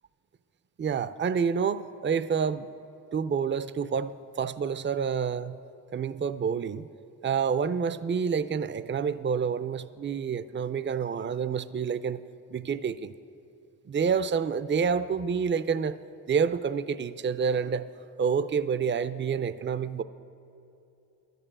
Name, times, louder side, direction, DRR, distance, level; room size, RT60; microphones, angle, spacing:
voice 1, 0.8-2.7 3.1-5.6 5.9-6.9 7.2-12.2 12.5-13.1 13.9-16.0 16.3-17.8 18.2-20.0, right 6 dB, 30° right, 15 dB, 0.4 m, -28 dB
12.0 x 6.8 x 8.7 m, 2.8 s
cardioid pair, 45°, 40 cm